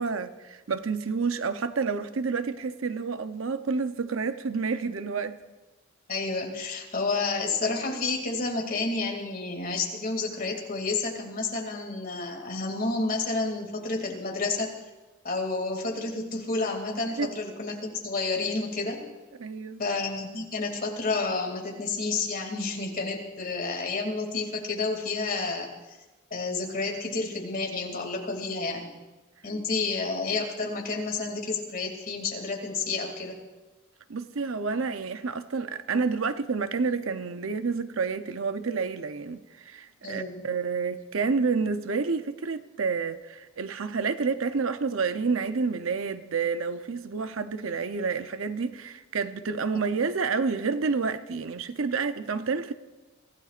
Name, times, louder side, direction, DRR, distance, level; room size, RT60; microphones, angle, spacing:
voice 1, 0.0-5.4 17.2-17.3 19.4-19.8 34.1-52.7, right 4 dB, 80° right, 0.7 m, -29 dB
voice 2, 6.1-14.7 15.2-19.0 19.8-25.7 26.3-28.9 29.4-33.4 40.0-40.5, left 3 dB, 45° left, 2.6 m, -30 dB
24.0 x 16.0 x 2.5 m
head